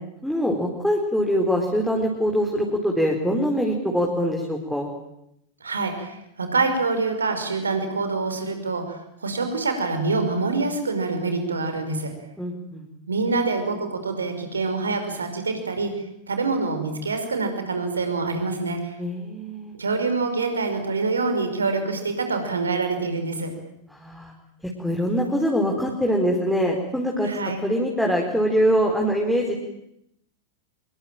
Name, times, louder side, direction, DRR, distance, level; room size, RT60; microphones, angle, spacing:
voice 1, 0.2-4.9 12.4-12.9 19.0-19.7 23.9-24.3 24.8-29.5, equal, ahead, 0 dB, 4.4 m, -23 dB
voice 2, 5.6-12.1 13.1-15.9 16.3-19.0 19.8-23.5 27.2-27.6, right 3 dB, 75° right, 7 dB, 5.4 m, -26 dB
26.0 x 22.5 x 9.1 m, 0.79 s
figure-of-eight pair, 90°, 0 cm